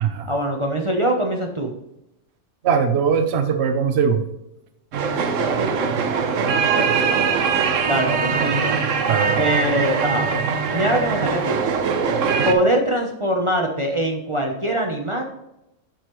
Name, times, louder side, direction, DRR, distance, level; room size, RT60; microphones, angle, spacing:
voice 1, 0.3-1.7 7.8-8.8 9.4-10.3 10.7-11.6 12.4-15.2, right 1 dB, 30° right, 1 dB, 0.8 m, -22 dB
voice 2, 2.6-4.2 9.1-9.4, right 6 dB, 60° right, 7 dB, 1.0 m, -20 dB
sound 1, 4.9-12.5, right 5 dB, 80° right, 1.1 m, -21 dB
7.9 x 6.5 x 3.1 m, 0.86 s
omnidirectional pair, 1.3 m